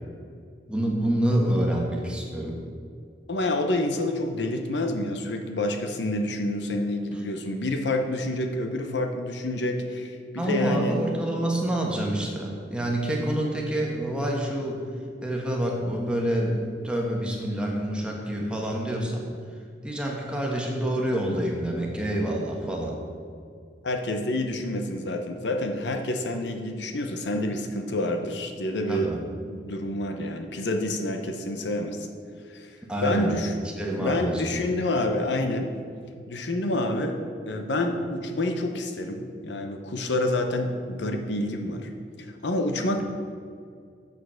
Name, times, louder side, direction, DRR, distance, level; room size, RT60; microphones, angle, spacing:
voice 1, 0.7-2.6 10.4-14.8 15.2-19.3 19.8-23.0 28.9-29.2 32.9-33.3 33.8-34.5, right 1 dB, 5° right, -1 dB, 1.3 m, -27 dB
voice 2, 3.3-11.0 23.8-29.1 29.5-32.1 32.5-32.7 33.0-33.5 34.0-35.7 36.3-37.2 37.5-41.9 42.2-43.0, left 1 dB, 75° left, 5 dB, 0.8 m, -28 dB
7.2 x 6.7 x 6.3 m, 2.2 s
head